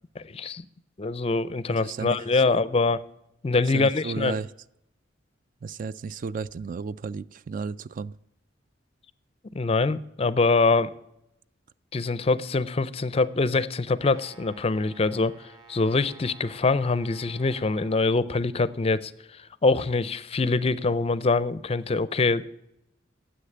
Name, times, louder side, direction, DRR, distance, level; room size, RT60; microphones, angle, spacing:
voice 1, 1.0-3.0 3.4-4.4 9.5-10.9 11.9-19.1 19.6-22.5, left 3 dB, 30° left, 17 dB, 0.5 m, -24 dB
voice 2, 1.7-2.6 3.7-4.5 5.6-8.1, right 5 dB, 45° right, 18 dB, 0.3 m, -34 dB
Brass instrument, 13.9-18.0, right 3 dB, 25° right, 2.5 m, -52 dB
9.9 x 7.8 x 8.6 m, 0.84 s
head